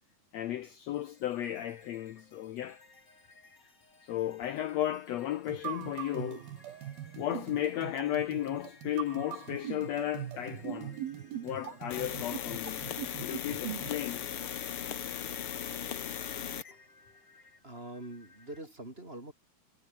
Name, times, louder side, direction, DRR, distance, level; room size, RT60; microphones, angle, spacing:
voice 1, 0.3-2.8 4.0-6.4 7.2-11.0 11.4-12.9 13.2-14.2, left 12 dB, 80° left, 1.5 m, -34 dB
sound 1, 0.9-18.6, left 3 dB, 30° left, 4.8 m, -60 dB
sound 2, 5.5-14.0, right 11 dB, 80° right, 3.6 m, -41 dB
sound 3, 11.9-16.7, left 9 dB, 55° left, 1.7 m, -38 dB
voice 2, 17.6-19.3, right 1 dB, 15° right, 3.5 m, -44 dB
omnidirectional pair, 4.2 m